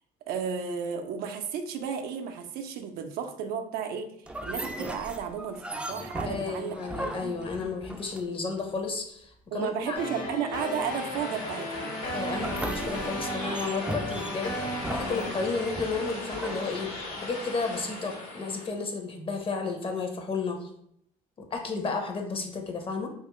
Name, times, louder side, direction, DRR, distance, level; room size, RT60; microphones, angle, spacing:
voice 1, 0.3-4.1 4.4-7.3 9.5-12.0, right 7 dB, 75° right, 5 dB, 0.4 m, -33 dB
sound 1, 4.3-8.6 12.3-17.4, right 1 dB, 5° right, 0.3 m, -37 dB
voice 2, 6.2-10.0 12.1-14.5 14.9-16.9 17.2-20.7 21.5-23.1, left 4 dB, 35° left, 4 dB, 0.6 m, -32 dB
sound 2, 9.9-15.3, left 1 dB, 60° left, 1.0 m, -35 dB
sound 3, 10.9-18.7, left 2 dB, 85° left, 1.1 m, -39 dB
2.9 x 2.4 x 3.0 m, 0.69 s
supercardioid pair, 90°, 16 cm